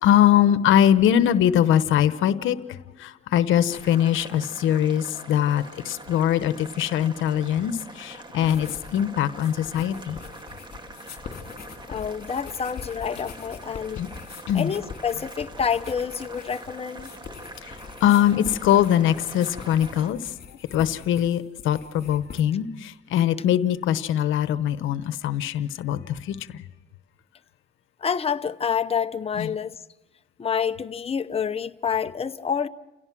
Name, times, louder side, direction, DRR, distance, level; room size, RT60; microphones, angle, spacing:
voice 1, 0.0-10.2 13.9-14.1 14.5-14.7 17.6-17.8 18.0-20.3 20.7-26.6 29.4-29.5, left 10 dB, 85° left, 1.0 m, -22 dB
Boiling, 3.7-20.1, right 2 dB, 25° right, 2.0 m, -44 dB
sound 1, 8.4-9.0 9.3-22.4, left 6 dB, 50° left, 2.5 m, -43 dB
voice 2, 11.9-14.0 14.5-17.1 28.0-29.8 30.4-32.7, left 7 dB, 30° left, 0.9 m, -28 dB
29.0 x 17.0 x 6.1 m
cardioid pair, 90°, 20 cm